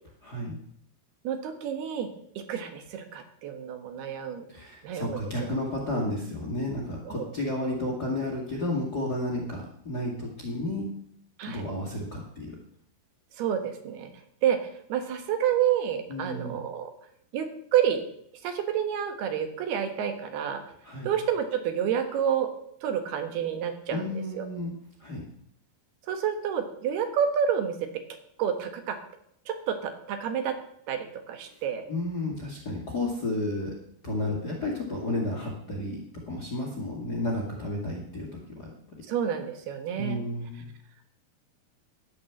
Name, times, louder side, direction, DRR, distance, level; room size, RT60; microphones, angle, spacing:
voice 1, 0.2-0.6 4.5-10.9 11.4-12.6 16.1-16.6 20.8-21.1 23.9-24.7 25.0-25.2 31.5-31.6 31.9-33.7 34.0-38.3 38.6-38.7 39.9-40.7, left 1 dB, 30° left, -1 dB, 1.9 m, -32 dB
voice 2, 1.2-2.1 2.4-4.5 4.8-5.5 7.1-7.3 11.4-11.6 13.4-14.1 14.4-16.9 17.3-18.0 18.4-20.6 21.0-22.5 22.8-24.5 26.1-27.8 28.4-29.0 29.5-30.6 30.9-31.9 39.1-40.2, right 8 dB, 70° right, 6 dB, 3.3 m, -29 dB
12.5 x 9.8 x 7.2 m, 0.68 s
omnidirectional pair, 4.8 m